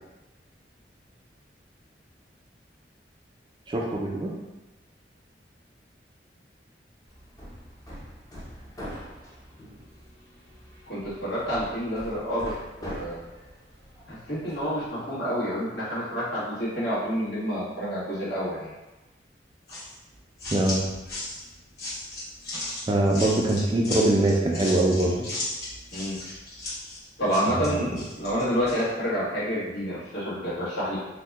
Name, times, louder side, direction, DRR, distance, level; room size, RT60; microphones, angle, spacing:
voice 1, 3.7-4.3 20.5-20.8 22.9-25.3 27.5-28.0, right 1 dB, 25° right, -1 dB, 0.3 m, -23 dB
Hammer, 7.1-14.9, equal, 20° left, 0.6 m, -43 dB
voice 2, 10.9-12.5 12.8-13.2 14.1-18.7 25.9-26.2 27.2-31.0, equal, 75° left, -9 dB, 1.3 m, -28 dB
sound 1, 19.7-28.8, left 2 dB, 60° left, 1.1 m, -36 dB
2.8 x 2.1 x 3.3 m, 1.1 s
head